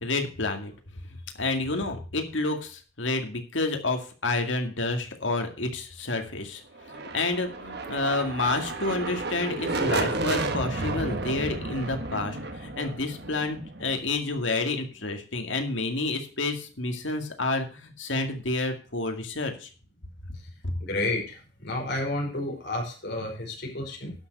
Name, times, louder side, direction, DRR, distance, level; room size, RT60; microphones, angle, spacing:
voice 1, 0.0-0.7 1.4-6.6 6.9-19.7, left 2 dB, 75° left, 5 dB, 2.2 m, -29 dB
sound 1, 6.8-14.5, right 2 dB, 55° right, 1.5 m, -32 dB
voice 2, 20.8-24.1, left 2 dB, 55° left, 1 dB, 5.0 m, -31 dB
11.5 x 6.5 x 6.7 m, 0.37 s
head